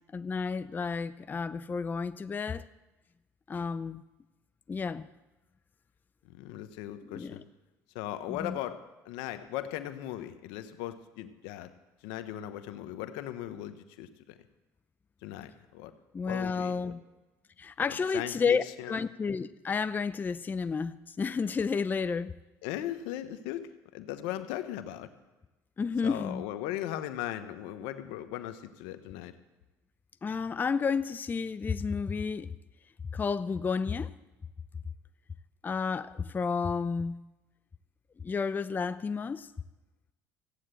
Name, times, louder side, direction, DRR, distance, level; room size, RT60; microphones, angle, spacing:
voice 1, 0.1-2.6 3.5-4.0 4.7-5.1 7.1-7.4 8.3-8.6 16.1-17.0 17.6-22.3 25.8-26.5 30.2-32.5 33.1-34.1 35.6-37.2 38.2-39.5, left 5 dB, 25° left, 0.5 m, -31 dB
voice 2, 6.2-7.4 7.9-11.7 12.0-14.4 15.2-15.9 16.3-16.9 17.9-19.1 22.6-25.1 26.0-29.3, left 12 dB, 85° left, 1.0 m, -38 dB
15.0 x 8.8 x 8.2 m
supercardioid pair, 95°, 8 cm